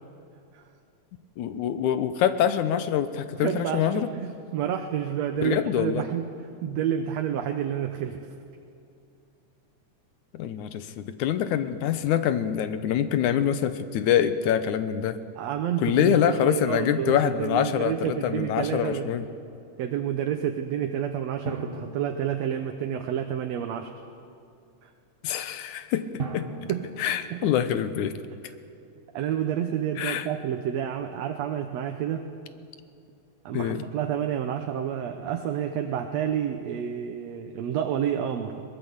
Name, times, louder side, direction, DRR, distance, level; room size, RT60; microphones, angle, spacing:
voice 1, 1.4-4.1 5.4-6.0 10.3-15.2 15.8-19.2 25.2-26.7 27.0-28.2 30.0-30.3 33.5-33.8, left 9 dB, 80° left, 11 dB, 2.4 m, -25 dB
voice 2, 3.4-6.3 6.6-8.2 15.4-19.1 19.8-23.9 24.8-24.9 26.7-27.0 27.3-27.5 29.1-32.3 33.5-38.6, right 9 dB, 70° right, 5 dB, 2.0 m, -29 dB
Drum, 17.1-18.6 21.5-23.2 26.2-27.8, right 4 dB, 40° right, 0.8 m, -39 dB
22.0 x 19.5 x 8.1 m, 2.6 s
omnidirectional pair, 3.4 m